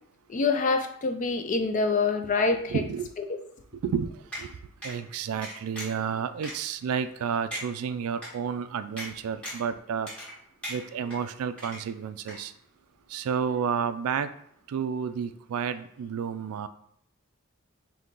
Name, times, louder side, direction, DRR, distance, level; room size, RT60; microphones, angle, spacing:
voice 1, 0.3-2.8, left 4 dB, 35° left, 7 dB, 0.3 m, -25 dB
voice 2, 2.7-3.1 3.8-4.6 4.8-10.1 10.7-12.5 13.1-14.3 14.7-16.7, right 7 dB, 80° right, 11 dB, 0.3 m, -31 dB
sound 1, 4.3-4.4 4.8-5.0 5.4-6.0 6.4-6.5 7.0-7.1 7.5-7.7 8.2-8.3 9.0-9.1 9.4-9.7 10.1-10.4 10.6-11.2 11.6-12.0 12.3-12.4, equal, 5° left, 1.1 m, -37 dB
3.9 x 2.7 x 3.6 m, 0.69 s
head